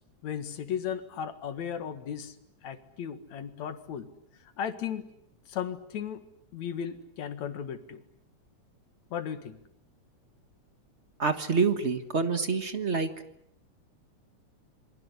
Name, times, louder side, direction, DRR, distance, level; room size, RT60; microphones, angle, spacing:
voice 1, 0.2-2.4 2.6-4.1 4.6-5.1 5.5-6.2 6.5-8.0 9.1-9.6, left 8 dB, 75° left, 10 dB, 3.0 m, -35 dB
voice 2, 11.2-13.1, right 4 dB, 35° right, 9 dB, 1.0 m, -27 dB
27.5 x 24.0 x 8.3 m, 0.73 s
omnidirectional pair, 3.3 m